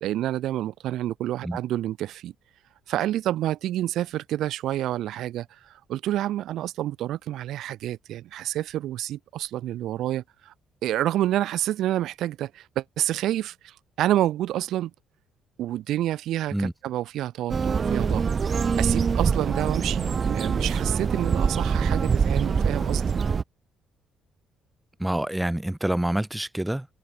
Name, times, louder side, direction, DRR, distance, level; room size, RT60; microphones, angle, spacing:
voice 1, 0.0-2.3 2.9-10.5 10.8-14.9 15.6-18.3 18.8-23.1, right 13 dB, 75° right, 0.8 m, -28 dB
sound 1, 17.5-23.4, right 5 dB, 35° right, 1.0 m, -24 dB
voice 2, 25.0-26.9, right 1 dB, 5° right, 1.0 m, -27 dB
cardioid pair, 100°, 0 cm